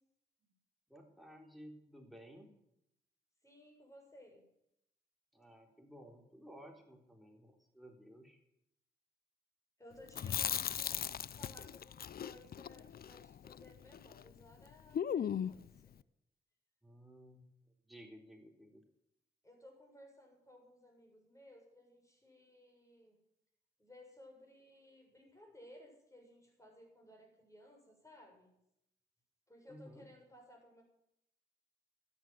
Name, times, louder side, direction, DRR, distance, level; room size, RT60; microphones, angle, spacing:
voice 1, 0.9-2.5 5.3-8.4 16.8-17.5 17.9-18.8 29.7-30.1, equal, ahead, 2 dB, 3.7 m, -56 dB
voice 2, 3.4-4.4 9.8-15.9 19.4-23.2 23.8-28.5 29.5-30.8, left 1 dB, 15° left, 1 dB, 7.1 m, -59 dB
Chewing mastication, 10.1-14.3 14.5-14.6 14.9-15.7, left 8 dB, 55° left, 0.5 m, -38 dB
13.0 x 9.1 x 9.3 m, 0.79 s
supercardioid pair, 50°, 19 cm